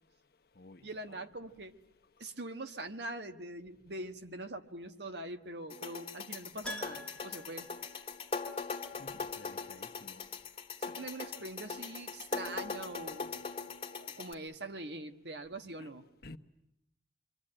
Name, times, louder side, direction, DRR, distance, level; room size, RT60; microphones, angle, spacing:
voice 1, 0.8-1.8 2.2-7.7 10.8-13.3 13.9-16.1, right 2 dB, 65° right, 1.5 m, -43 dB
sound 1, 5.7-14.3, left 5 dB, 30° left, 1.9 m, -41 dB
Keyboard (musical), 6.6-8.7 8.9-9.0 11.8-11.9 12.1-12.2, equal, 5° left, 2.1 m, -47 dB
voice 2, 9.0-10.2 15.8-15.9 16.2-16.4, left 2 dB, 55° left, 1.1 m, -52 dB
26.5 x 24.5 x 8.9 m
head